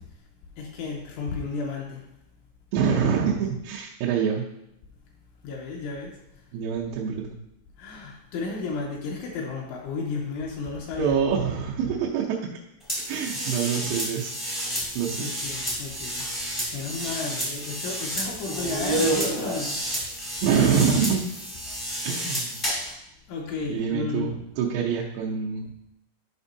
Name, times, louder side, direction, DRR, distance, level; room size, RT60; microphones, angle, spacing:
voice 1, 0.6-2.0 5.4-6.2 7.8-11.1 15.2-16.3 16.7-20.2 20.6-21.0 23.3-24.3, left 4 dB, 80° left, -1 dB, 2.9 m, -33 dB
voice 2, 2.7-4.4 6.5-7.4 11.0-12.4 13.1-14.3 15.0-15.3 20.4-21.2 22.1-22.6 23.7-25.7, right 7 dB, 90° right, -5 dB, 3.6 m, -25 dB
sound 1, 12.9-22.9, equal, 55° left, 0.3 m, -30 dB
12.0 x 5.2 x 2.7 m, 0.83 s
omnidirectional pair, 6.0 m